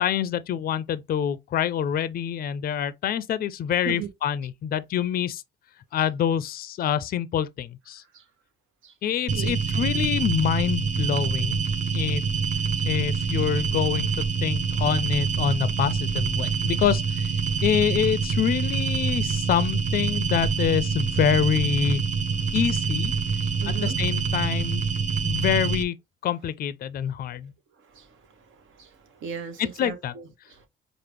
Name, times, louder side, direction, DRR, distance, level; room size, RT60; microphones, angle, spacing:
voice 1, 0.0-5.4 5.9-8.0 9.0-11.6 11.9-12.2 12.9-17.3 17.6-22.0 22.5-23.1 23.7-24.9 25.2-26.0 26.2-27.5 29.6-30.1, left 9 dB, 50° left, 0.4 m, -26 dB
sound 1, 9.3-25.8, right 5 dB, 40° right, 0.6 m, -26 dB
voice 2, 23.4-24.0 27.8-30.7, right 7 dB, 80° right, 1.0 m, -38 dB
4.8 x 2.0 x 3.3 m
cardioid pair, 90°, 20 cm